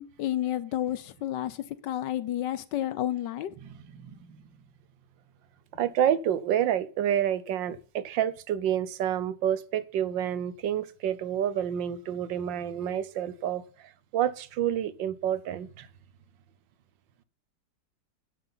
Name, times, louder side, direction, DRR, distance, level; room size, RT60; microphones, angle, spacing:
voice 1, 0.0-3.5, left 12 dB, 75° left, 1.5 m, -31 dB
voice 2, 3.6-4.4 5.8-15.9, right 10 dB, 90° right, 1.6 m, -29 dB
10.0 x 7.6 x 5.8 m
omnidirectional pair, 1.9 m